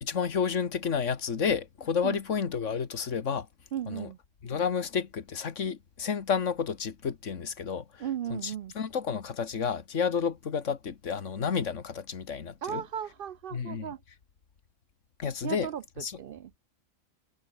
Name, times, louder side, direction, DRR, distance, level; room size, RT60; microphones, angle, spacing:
voice 1, 0.0-3.5 3.9-4.1 4.4-12.8 13.5-13.9 15.2-15.7 16.0-16.2, left 6 dB, 70° left, 1.9 m, -31 dB
voice 2, 3.7-4.2 8.0-8.7 12.6-14.0 15.4-16.6, right 10 dB, 65° right, 0.6 m, -36 dB
omnidirectional pair, 1.3 m